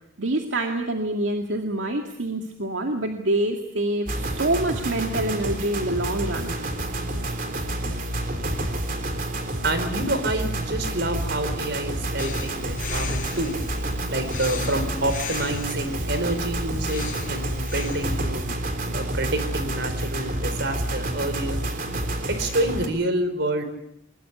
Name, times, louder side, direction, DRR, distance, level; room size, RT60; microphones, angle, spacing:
voice 1, 0.2-6.6, right 1 dB, 80° right, 3 dB, 2.2 m, -26 dB
sound 1, 4.1-22.9, right 1 dB, 45° right, 3.6 m, -29 dB
voice 2, 9.6-13.5 14.1-18.4 18.9-21.6 22.3-23.6, right 1 dB, 65° right, 9 dB, 4.5 m, -28 dB
Breathing, 12.2-18.2, left 5 dB, 45° left, 6.7 m, -37 dB
22.5 x 21.5 x 8.2 m, 0.77 s
head